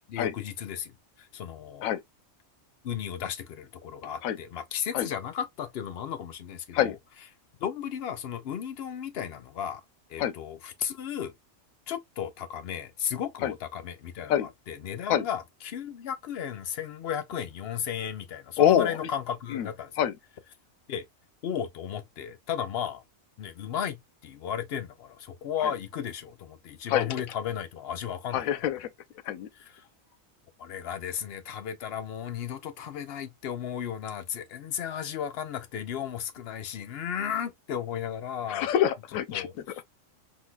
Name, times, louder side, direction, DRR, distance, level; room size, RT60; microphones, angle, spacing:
voice 1, 0.1-1.9 2.8-6.9 7.6-9.8 10.1-11.3 11.9-19.9 20.9-21.1 21.4-23.0 23.4-28.7 29.6-29.8 30.6-38.7 39.3-39.5, left 8 dB, 60° left, 0.7 m, -34 dB
voice 2, 18.6-19.0 19.5-19.7 20.0-20.1 25.6-25.7 26.9-27.1 28.3-28.9 29.2-29.5 38.5-39.8, left 10 dB, 85° left, 1.0 m, -26 dB
3.8 x 2.6 x 2.2 m
omnidirectional pair, 1.4 m